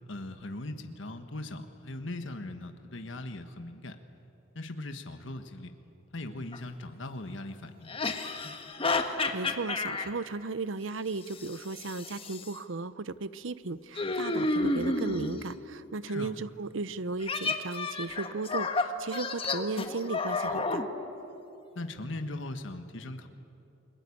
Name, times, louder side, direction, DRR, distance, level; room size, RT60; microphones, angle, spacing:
voice 1, 0.1-4.0 4.5-5.7 6.1-8.0 16.1-16.3 21.7-23.3, left 2 dB, 70° left, 7 dB, 1.5 m, -39 dB
sound 1, 6.5-6.6 7.9-10.1 11.3-12.5 14.0-15.5 17.2-20.9, left 3 dB, 30° left, 1.6 m, -31 dB
voice 2, 9.0-20.9, right 3 dB, 75° right, 16 dB, 0.8 m, -36 dB
30.0 x 21.5 x 8.6 m, 2.8 s
head